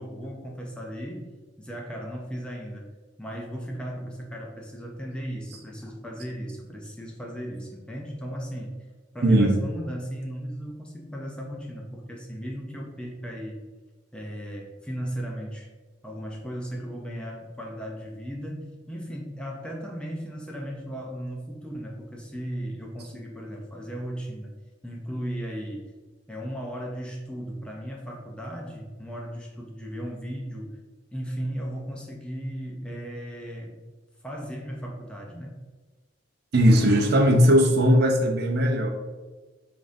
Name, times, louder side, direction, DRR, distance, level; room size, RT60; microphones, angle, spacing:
voice 1, 0.0-1.3 1.6-2.9 3.2-8.8 9.1-13.6 14.1-15.7 16.0-24.5 24.8-25.9 26.3-30.8 31.1-33.8 34.2-35.6, equal, 5° left, -1 dB, 0.4 m, -36 dB
voice 2, 9.2-9.6 36.5-38.9, equal, 55° right, 2 dB, 0.5 m, -19 dB
5.2 x 2.5 x 2.5 m, 1.3 s
head